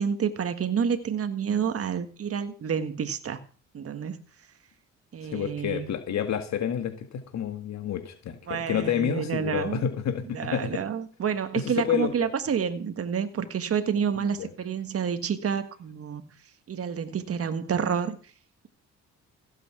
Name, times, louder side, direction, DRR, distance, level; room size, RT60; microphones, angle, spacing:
voice 1, 0.0-3.4 3.7-4.2 5.1-5.9 8.5-9.8 10.3-16.3 16.7-18.2, right 7 dB, 50° right, 1.6 m, -29 dB
voice 2, 5.2-10.8 11.6-12.3 14.4-14.5, left 8 dB, 65° left, 1.8 m, -29 dB
15.5 x 8.3 x 6.1 m
cardioid pair, 90°, 30 cm